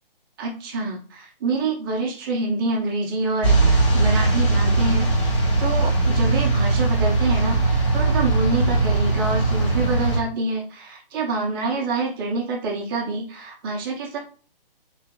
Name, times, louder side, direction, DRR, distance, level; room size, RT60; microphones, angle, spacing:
voice 1, 0.4-5.1 5.6-14.2, right 3 dB, 25° right, -1 dB, 0.9 m, -26 dB
sound 1, 3.4-10.2, right 3 dB, 30° left, 1.2 m, -20 dB
3.8 x 2.9 x 2.9 m, 0.38 s
figure-of-eight pair, 140°, 29 cm